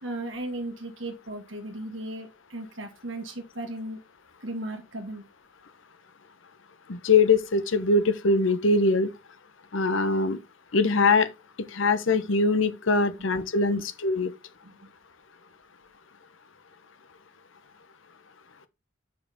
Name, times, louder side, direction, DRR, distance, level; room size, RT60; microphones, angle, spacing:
voice 1, 0.0-4.0 4.4-5.2 14.6-14.8, right 1 dB, 70° right, 1.7 m, -36 dB
voice 2, 6.9-9.1 9.7-10.4 10.7-11.3 11.7-14.3, left 3 dB, 75° left, 0.9 m, -22 dB
6.5 x 5.8 x 3.6 m
head